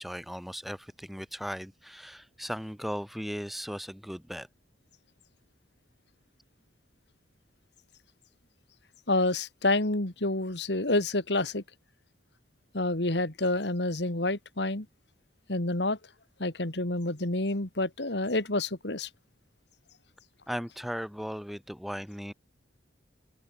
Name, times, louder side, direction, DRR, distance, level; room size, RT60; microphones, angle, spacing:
voice 1, 0.0-4.5 20.5-22.3, equal, ahead, 6.9 m, -37 dB
voice 2, 9.1-11.6 12.7-14.9 15.5-16.0 16.4-19.1, left 2 dB, 65° left, 2.6 m, -28 dB
open air
head